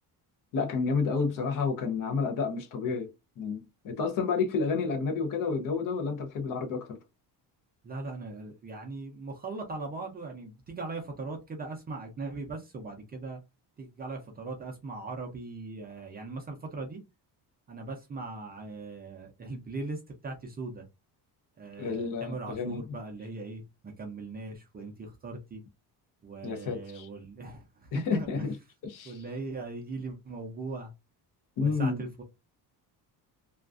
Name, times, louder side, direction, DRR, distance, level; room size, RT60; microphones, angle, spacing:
voice 1, 0.5-3.1 3.4-7.0 21.8-23.0 26.4-27.1 27.9-28.5 28.8-29.2 31.6-32.0, left 5 dB, 50° left, 0.6 m, -30 dB
voice 2, 7.8-13.4 13.8-17.0 17.7-20.8 21.6-25.6 26.2-28.5 29.0-30.9 31.6-32.2, right 3 dB, 25° right, 0.4 m, -39 dB
2.4 x 2.2 x 2.3 m
cardioid pair, 160°, 41 cm